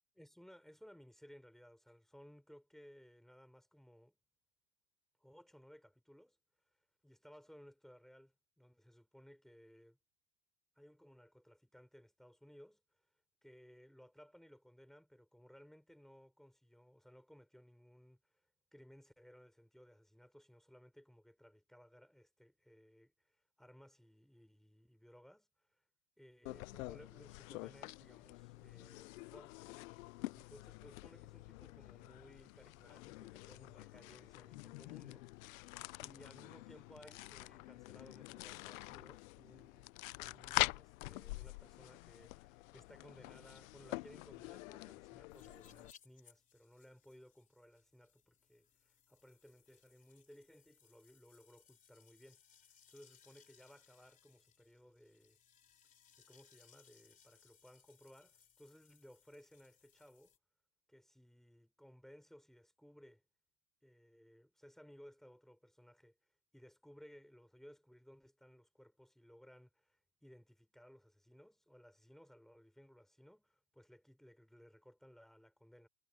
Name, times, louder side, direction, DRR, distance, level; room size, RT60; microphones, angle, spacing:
voice 1, 0.2-4.2 5.2-6.4 7.0-10.0 10.8-12.8 13.4-18.3 18.7-25.8 26.2-29.6 30.3-39.9 40.2-52.4 52.9-55.4 56.2-60.3 60.9-63.2 63.8-66.2 66.5-75.9, equal, ahead, 3.7 m, -61 dB
sound 1, 26.4-45.9, left 21 dB, 65° left, 0.5 m, -46 dB
sound 2, 45.3-60.4, left 8 dB, 15° left, 4.1 m, -68 dB
supercardioid pair, 170°, 44 cm